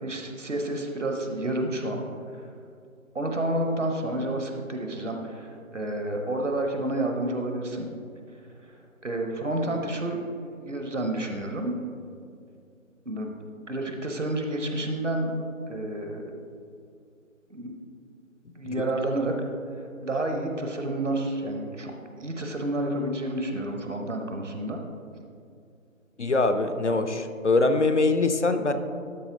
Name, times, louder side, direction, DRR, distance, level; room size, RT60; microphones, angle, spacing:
voice 1, 0.0-2.0 3.1-7.9 9.0-11.8 13.1-13.3 13.7-15.3 15.7-16.2 17.5-17.8 18.6-19.3 19.8-21.9 22.2-24.8, right 1 dB, 60° right, 3 dB, 1.1 m, -30 dB
voice 2, 26.2-28.7, left 3 dB, 60° left, 8 dB, 0.6 m, -23 dB
12.0 x 4.3 x 3.8 m, 2.5 s
figure-of-eight pair, 160°, 41 cm